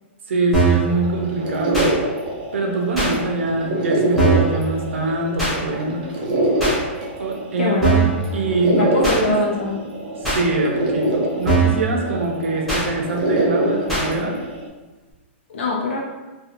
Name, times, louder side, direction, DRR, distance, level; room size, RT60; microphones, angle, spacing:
voice 1, 0.3-1.9 2.5-6.1 7.2-9.3 10.2-14.4, right 2 dB, 90° right, 1 dB, 0.6 m, -24 dB
sound 1, 0.5-0.9 1.7-1.9 3.0-3.1 4.2-4.5 5.4-5.6 6.6-6.8 7.8-8.2 9.0-9.2 10.2-10.4 11.5-11.8 12.7-12.9 13.9-14.1, right 4 dB, ahead, 0.6 m, -19 dB
sound 2, 0.9-14.7, right 1 dB, 45° right, 0.5 m, -25 dB
voice 2, 7.6-7.9 8.7-9.8 15.5-16.0, left 2 dB, 75° left, -2 dB, 0.5 m, -22 dB
2.5 x 2.3 x 2.7 m, 1.2 s
hypercardioid pair, 175°, 7 cm